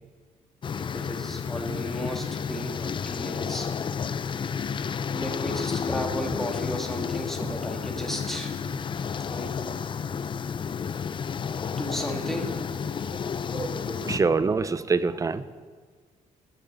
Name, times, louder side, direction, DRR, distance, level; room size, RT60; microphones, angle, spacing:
sound 1, 0.6-14.2, left 6 dB, 35° left, 0.5 m, -31 dB
voice 1, 0.8-3.7 5.1-8.5 9.3-9.5 11.8-12.6 14.1-14.2, equal, ahead, 0 dB, 2.4 m, -34 dB
voice 2, 13.5-15.4, right 4 dB, 25° right, 14 dB, 0.7 m, -25 dB
19.5 x 7.6 x 7.0 m, 1.6 s
cardioid pair, 110°, 14 cm